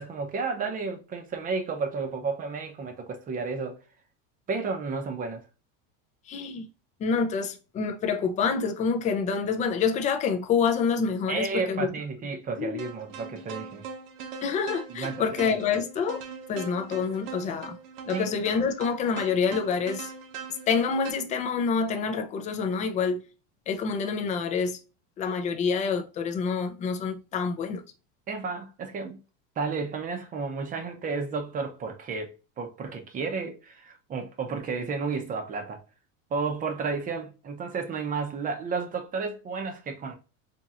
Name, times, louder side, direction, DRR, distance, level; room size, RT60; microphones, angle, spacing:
voice 1, 0.0-3.8 4.5-5.4 11.3-13.9 14.9-15.3 18.1-18.3 28.3-29.2 29.6-35.8 36.3-40.1, right 4 dB, 20° right, 0.7 m, -32 dB
voice 2, 6.3-6.7 7.0-11.9 12.6-12.8 14.4-16.2 16.5-17.8 18.1-20.1 20.7-23.2 23.7-24.8 25.2-27.8, left 5 dB, 20° left, 0.4 m, -27 dB
sound 1, 12.8-21.1, right 5 dB, 60° right, 0.9 m, -41 dB
4.3 x 2.8 x 2.4 m
supercardioid pair, 145°, 38 cm